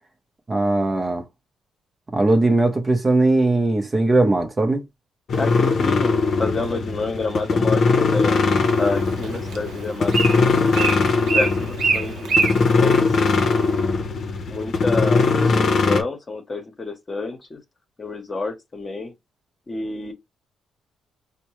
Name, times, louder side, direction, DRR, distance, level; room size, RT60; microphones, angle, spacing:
voice 1, 0.5-1.2 2.1-4.8, right 2 dB, 25° right, 0.7 m, -19 dB
sound 1, 5.3-16.0, left 4 dB, 55° left, 0.7 m, -20 dB
voice 2, 5.4-8.4 8.8-10.6 11.2-13.2 13.5-13.9 14.5-17.6 18.0-19.1 19.7-20.1, left 3 dB, 30° left, 1.0 m, -29 dB
Bird, 8.6-13.7, right 4 dB, 70° right, 0.9 m, -26 dB
4.4 x 2.1 x 3.0 m
cardioid pair, 90°, 0 cm